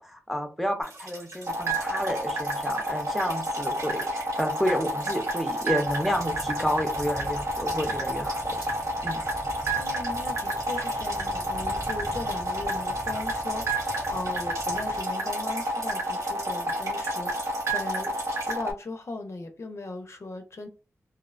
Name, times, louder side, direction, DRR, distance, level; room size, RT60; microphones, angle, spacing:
voice 1, 0.0-8.7 9.0-9.2, equal, ahead, 0.7 m, -30 dB
sound 1, 0.8-18.6, right 2 dB, 90° right, 1.4 m, -42 dB
sound 2, 1.5-18.7, right 1 dB, 55° right, 0.6 m, -29 dB
sound 3, 5.8-15.0, equal, 70° right, 1.0 m, -42 dB
voice 2, 9.7-18.1 18.4-20.7, left 2 dB, 55° left, 0.5 m, -38 dB
2.5 x 2.0 x 2.4 m
cardioid pair, 50°, 5 cm